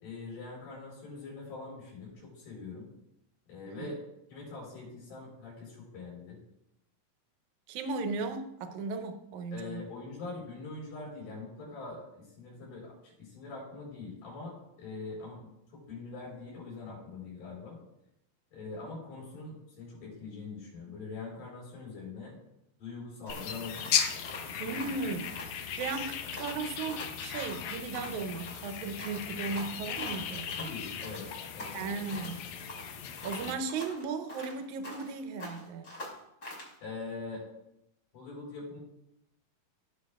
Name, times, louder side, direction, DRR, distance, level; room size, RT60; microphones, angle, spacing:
voice 1, 0.0-2.9 3.5-4.0 4.3-6.4 9.5-17.8 18.5-22.3 22.8-24.0 24.4-24.9 30.5-32.1 33.4-33.6 36.8-37.5 38.1-38.8, left 3 dB, 65° left, -4 dB, 5.4 m, -43 dB
voice 2, 7.7-9.9 24.6-30.6 31.7-32.5 33.2-35.9, right 4 dB, 75° right, 7 dB, 1.9 m, -36 dB
sound 1, 23.3-33.6, left 8 dB, 80° left, 1.6 m, -37 dB
sound 2, 23.3-25.5 25.8-26.1 26.4-28.2 28.5-30.7 31.0-32.4 32.7-35.1 35.4-36.7, left 1 dB, 35° left, 2.9 m, -45 dB
16.5 x 6.5 x 2.4 m, 0.83 s
omnidirectional pair, 4.0 m